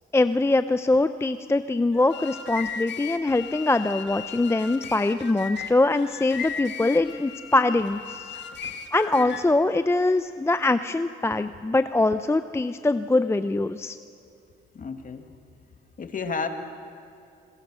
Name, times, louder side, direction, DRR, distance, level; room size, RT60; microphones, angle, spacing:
voice 1, 0.1-8.4 8.9-14.0, left 2 dB, 15° left, 11 dB, 0.6 m, -23 dB
sound 1, 1.9-9.6, left 7 dB, 65° left, 1.7 m, -37 dB
voice 2, 14.7-15.2 16.0-16.5, left 5 dB, 45° left, 6 dB, 2.1 m, -31 dB
27.0 x 21.5 x 6.3 m, 2.5 s
cardioid pair, 90°, 20 cm